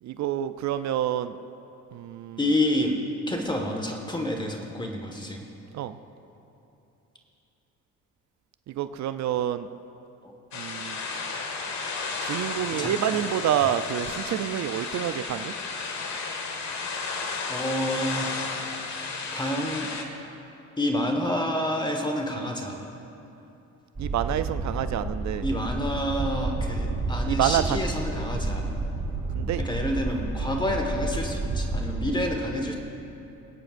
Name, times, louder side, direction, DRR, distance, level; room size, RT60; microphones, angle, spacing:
voice 1, 0.0-1.3 1.9-2.4 5.7-6.0 8.7-9.7 10.5-11.0 12.2-15.5 24.0-25.5 27.3-27.8 29.3-29.6, right 11 dB, 65° right, 11 dB, 0.5 m, -28 dB
voice 2, 2.4-3.0 3.3-5.4 10.2-10.3 12.8-13.2 17.5-18.3 19.3-19.9 20.8-22.9 25.4-28.7 29.6-32.7, left 1 dB, 15° left, 2 dB, 1.3 m, -28 dB
sound 1, 10.5-20.0, left 4 dB, 65° left, 1.4 m, -33 dB
sound 2, 24.0-32.1, right 3 dB, 25° right, 3.1 m, -30 dB
25.5 x 8.9 x 2.5 m, 3.0 s
cardioid pair, 90°, 30 cm